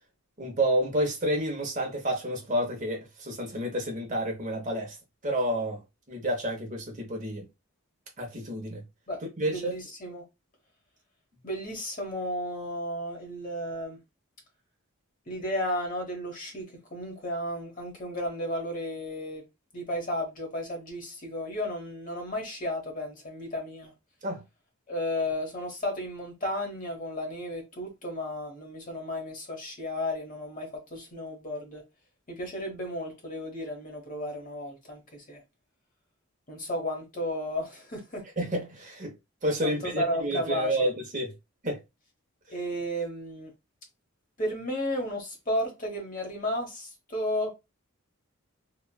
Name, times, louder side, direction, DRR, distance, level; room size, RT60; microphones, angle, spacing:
voice 1, 0.4-5.0 5.2-5.8 6.1-7.4 8.2-8.8 9.4-9.8 24.2-24.4 38.4-39.1 39.4-41.3 41.6-41.8, right 1 dB, 35° right, 0.8 m, -29 dB
voice 2, 9.5-10.2 11.4-14.0 15.3-16.7 16.9-19.4 19.7-23.9 24.9-31.8 32.3-35.4 36.5-38.2 39.6-40.9 42.5-43.5 44.4-47.5, left 1 dB, 35° left, 1.0 m, -33 dB
3.0 x 2.3 x 2.2 m
head